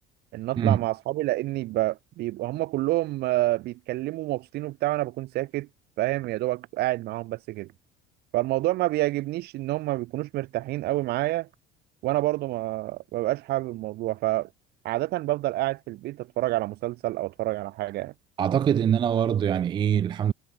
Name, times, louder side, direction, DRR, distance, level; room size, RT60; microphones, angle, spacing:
voice 1, 0.3-5.7 6.0-7.7 8.3-11.5 12.0-14.5 14.8-18.1, right 17 dB, 60° right, 1.2 m, -28 dB
voice 2, 18.4-20.3, right 9 dB, 25° right, 0.3 m, -23 dB
cardioid pair, 150°, 19 cm